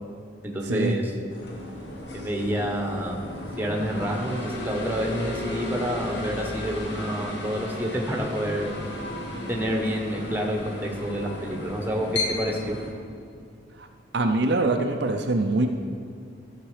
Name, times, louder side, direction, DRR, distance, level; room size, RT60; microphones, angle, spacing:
voice 1, 0.4-1.1 2.1-3.2 3.6-8.8 9.5-12.8, equal, 10° right, 1 dB, 1.1 m, -28 dB
sound 1, 1.3-12.9, left 1 dB, 65° left, 1.7 m, -34 dB
voice 2, 14.1-15.7, right 2 dB, 60° right, 4 dB, 0.6 m, -23 dB
13.0 x 6.7 x 5.0 m, 2.4 s
head